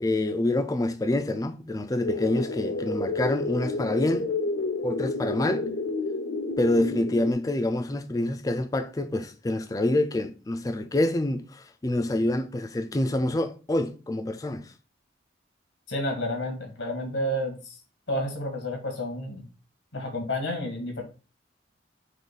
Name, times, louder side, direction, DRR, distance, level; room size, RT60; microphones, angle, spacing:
voice 1, 0.0-4.3 4.8-5.7 6.6-14.7, left 1 dB, 20° left, 0.3 m, -27 dB
sound 1, 2.0-7.3, left 3 dB, 65° left, 0.6 m, -30 dB
voice 2, 15.9-17.6 18.1-19.4 19.9-21.0, left 1 dB, 85° left, 1.4 m, -30 dB
3.7 x 3.0 x 4.0 m
head